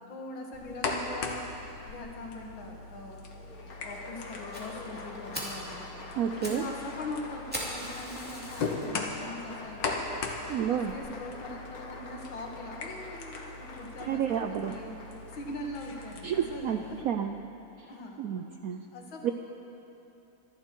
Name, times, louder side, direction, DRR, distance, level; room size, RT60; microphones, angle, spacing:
voice 1, 0.1-1.5 1.8-3.2 3.8-5.8 6.3-10.1 10.5-15.0 15.3-17.0 17.8-18.4 18.9-19.3, left 2 dB, 85° left, 0 dB, 2.5 m, -42 dB
sound 1, 0.5-17.0, left 3 dB, 70° left, 1.9 m, -40 dB
Applause, 3.3-16.6, left 3 dB, 50° left, 1.6 m, -46 dB
Fire, 4.5-4.6 5.0-5.1 5.3-5.6 6.2-6.6 6.9-7.0 7.5-8.9 9.4-9.5 10.1-10.2 10.5-10.6 10.9-11.0, equal, 5° right, 2.6 m, -38 dB
voice 2, 6.2-6.6 10.5-10.9 14.0-14.7 16.2-16.8 17.0-17.3 18.2-18.8 19.2-19.3, right 9 dB, 75° right, 6 dB, 0.8 m, -30 dB
25.5 x 11.0 x 4.5 m, 2.9 s
omnidirectional pair, 2.1 m